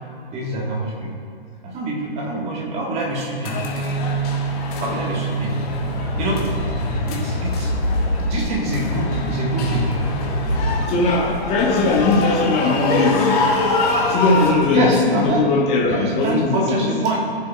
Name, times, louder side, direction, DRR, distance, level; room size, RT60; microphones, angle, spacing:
voice 1, 0.3-1.1 1.6-4.0 4.8-5.5 5.9-6.4 6.9-7.7 8.3-9.9 11.0-11.2 14.7-15.5 15.9-17.2, right 1 dB, 20° right, -2 dB, 1.7 m, -25 dB
sound 1, 3.1-15.0, right 1 dB, 85° left, 1.1 m, -26 dB
sound 2, 3.4-14.5, left 3 dB, 35° left, 1.7 m, -26 dB
voice 2, 10.9-13.4 14.1-16.9, left 3 dB, 20° left, -3 dB, 1.3 m, -19 dB
15.5 x 6.7 x 2.4 m, 2.2 s
figure-of-eight pair, 125°, 31 cm